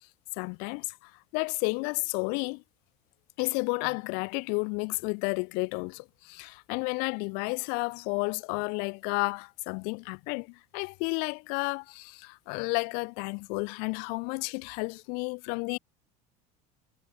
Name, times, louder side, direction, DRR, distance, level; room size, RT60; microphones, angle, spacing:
voice 1, 0.4-2.6 3.4-15.8, left 36 dB, 55° left, 0.5 m, -32 dB
cardioid pair, 155°, 19 cm